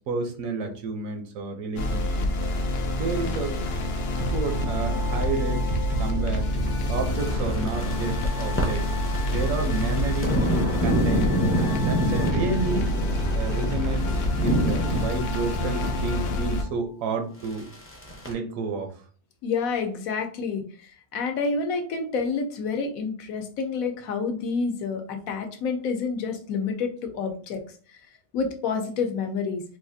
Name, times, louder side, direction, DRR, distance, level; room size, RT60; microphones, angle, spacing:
voice 1, 0.1-2.3 2.9-3.5 4.3-5.7 6.0-6.4 6.9-8.8 9.3-10.4 10.8-12.9 13.3-14.1 14.4-17.7 18.3-18.9, right 4 dB, 70° right, 5 dB, 1.0 m, -30 dB
sound 1, 1.8-16.6, left 2 dB, 65° left, 0.6 m, -27 dB
sound 2, 3.8-16.8, right 3 dB, 55° right, 0.5 m, -34 dB
sound 3, 7.0-15.0 17.4-18.3, equal, 15° left, 0.4 m, -27 dB
voice 2, 19.4-27.6 27.9-28.0 28.3-29.6, left 5 dB, 80° left, 5 dB, 1.1 m, -28 dB
4.1 x 2.4 x 2.6 m, 0.43 s
omnidirectional pair, 1.5 m